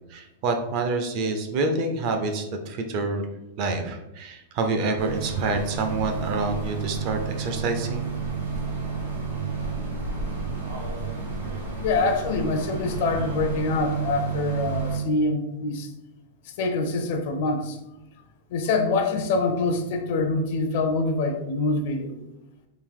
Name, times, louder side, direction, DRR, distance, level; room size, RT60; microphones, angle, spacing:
voice 1, 0.1-3.3 3.6-8.1, right 3 dB, 35° right, 5 dB, 0.4 m, -27 dB
sound 1, 5.0-15.0, right 5 dB, 85° right, 1.3 m, -31 dB
voice 2, 11.8-15.9 16.5-17.8 18.5-22.1, left 3 dB, 45° left, 5 dB, 0.5 m, -25 dB
3.6 x 2.5 x 3.4 m, 0.93 s
supercardioid pair, 170°, 0 cm